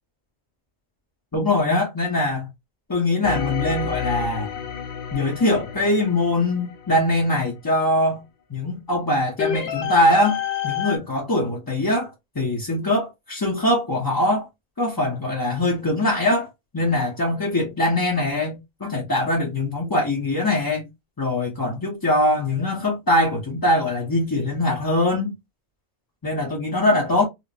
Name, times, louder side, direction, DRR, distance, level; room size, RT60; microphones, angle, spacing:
voice 1, 1.3-2.5 2.9-4.5 5.1-8.2 8.5-10.4 10.6-14.5 14.8-20.9 21.2-25.3 26.2-27.2, left 1 dB, 25° left, 0.7 m, -22 dB
sound 1, 3.2-7.4 9.4-11.0, left 8 dB, 60° left, 0.7 m, -30 dB
4.3 x 2.0 x 2.5 m
omnidirectional pair, 1.1 m